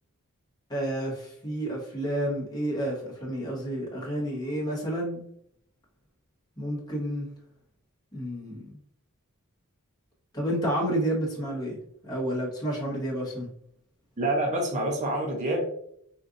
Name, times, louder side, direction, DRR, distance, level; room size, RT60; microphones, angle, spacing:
voice 1, 0.7-5.2 6.6-7.3 8.1-8.8 10.3-13.5, right 1 dB, 20° left, -3 dB, 1.0 m, -30 dB
voice 2, 14.2-15.7, right 1 dB, 35° right, -1 dB, 0.6 m, -27 dB
3.7 x 2.5 x 2.4 m, 0.68 s
head